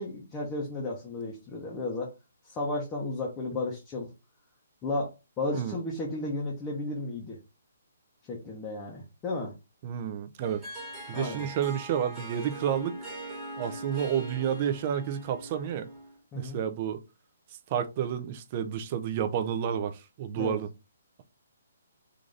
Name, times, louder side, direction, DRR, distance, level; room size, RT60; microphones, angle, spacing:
voice 1, 0.0-2.1 2.4-4.1 4.8-7.4 8.3-9.5 11.1-11.5 16.3-16.6 20.4-20.6, left 2 dB, 15° left, 0.7 m, -33 dB
voice 2, 9.8-10.6 11.1-13.0 13.6-15.9 16.3-17.0 17.7-20.7, right 9 dB, 30° right, 0.4 m, -30 dB
Harp, 10.4-16.2, right 2 dB, 10° right, 1.1 m, -41 dB
3.8 x 2.5 x 3.2 m
hypercardioid pair, 170°, 0 cm